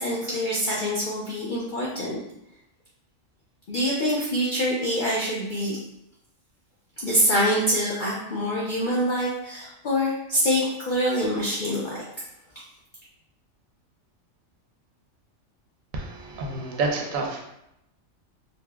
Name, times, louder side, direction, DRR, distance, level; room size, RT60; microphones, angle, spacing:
voice 1, 0.0-2.2 3.7-5.8 7.0-12.0, equal, 70° left, -5 dB, 0.4 m, -25 dB
voice 2, 15.9-17.4, right 3 dB, 80° right, 1 dB, 1.0 m, -29 dB
4.1 x 2.0 x 2.2 m, 0.84 s
omnidirectional pair, 1.4 m